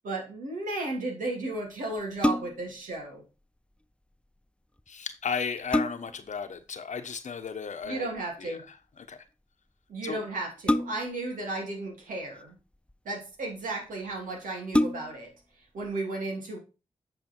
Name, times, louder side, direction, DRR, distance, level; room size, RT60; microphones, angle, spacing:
voice 1, 0.0-3.2 7.8-8.6 9.9-12.5 13.0-15.3 15.7-16.6, right 2 dB, 85° right, 0 dB, 2.9 m, -34 dB
sound 1, 2.0-2.8 4.8-4.9 5.3-6.3 7.8-8.2 10.6-11.3 12.2-12.9 13.7-13.8 14.1-14.2 14.7-15.3 15.8-15.9, left 1 dB, 10° left, 0.6 m, -28 dB
voice 2, 4.9-8.1 8.4-8.6 9.1-9.2 10.0-10.2, left 6 dB, 65° left, 8 dB, 1.1 m, -34 dB
9.1 x 4.9 x 4.5 m, 0.31 s
supercardioid pair, 40°, 13 cm